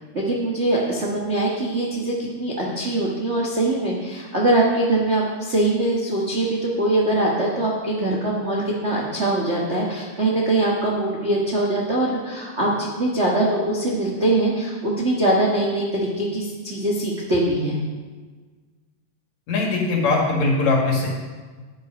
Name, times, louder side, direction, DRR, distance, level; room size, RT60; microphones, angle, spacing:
voice 1, 0.1-17.8, right 1 dB, 85° right, -3 dB, 0.6 m, -22 dB
voice 2, 19.5-21.1, left 3 dB, 60° left, -1 dB, 3.0 m, -20 dB
9.8 x 8.3 x 5.2 m, 1.4 s
omnidirectional pair, 3.8 m